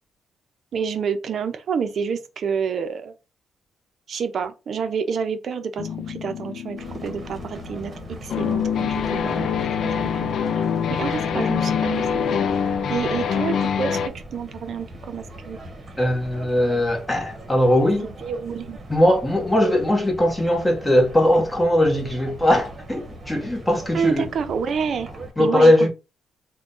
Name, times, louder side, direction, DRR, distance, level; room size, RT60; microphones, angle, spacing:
voice 1, 0.7-3.1 4.1-7.9 8.2-9.5 9.8-10.3 10.5-10.6 10.9-12.2 12.9-14.0 14.3-15.6 18.0-18.8 23.9-25.1 25.4-25.9, right 6 dB, 55° right, 0.6 m, -28 dB
sound 1, 5.8-14.1, left 7 dB, 65° left, 0.4 m, -25 dB
sound 2, 6.8-25.3, right 1 dB, 30° right, 1.1 m, -40 dB
voice 2, 16.0-18.1 18.9-24.2 25.4-25.9, left 1 dB, 10° left, 1.2 m, -19 dB
3.7 x 2.2 x 3.7 m
cardioid pair, 115°, 0 cm